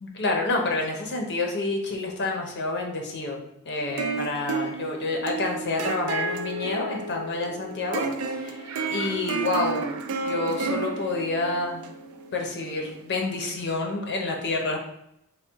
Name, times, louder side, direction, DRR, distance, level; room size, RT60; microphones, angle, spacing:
voice 1, 0.0-8.0 8.4-8.6 8.9-10.0 10.3-11.8 12.3-14.8, left 2 dB, 55° left, 1 dB, 0.8 m, -28 dB
sound 1, 3.8-13.0, right 3 dB, 90° right, 0.4 m, -32 dB
3.5 x 2.3 x 4.4 m, 0.79 s
head